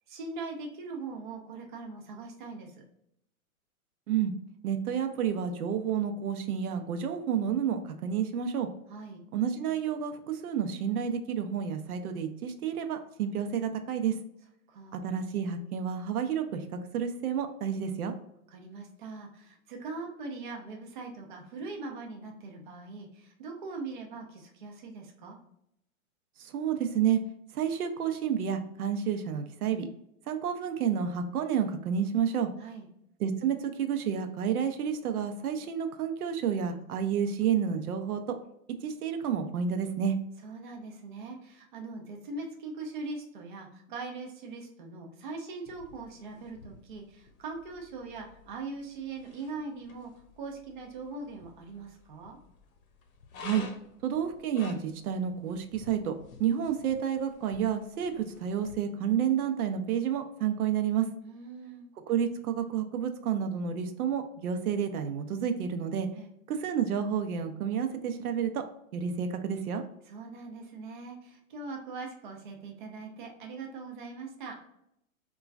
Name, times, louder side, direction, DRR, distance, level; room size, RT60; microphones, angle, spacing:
voice 1, 0.1-2.8 8.9-9.2 14.7-15.1 18.5-25.4 32.6-32.9 40.4-50.1 50.4-52.4 61.2-61.9 66.1-66.3 70.1-74.6, right 3 dB, 35° right, 1 dB, 0.4 m, -41 dB
voice 2, 4.6-8.7 9.3-14.2 14.9-16.7 16.9-18.1 26.4-27.2 27.5-29.9 30.3-32.5 33.2-38.4 38.8-40.2 53.4-53.6 54.0-56.1 56.4-61.1 62.1-66.1 66.5-68.6 68.9-69.8, right 8 dB, 80° right, 7 dB, 0.6 m, -30 dB
sound 1, 45.7-58.7, left 5 dB, 70° left, 0.7 m, -52 dB
3.0 x 2.3 x 2.3 m, 0.76 s
hypercardioid pair, 155°, 43 cm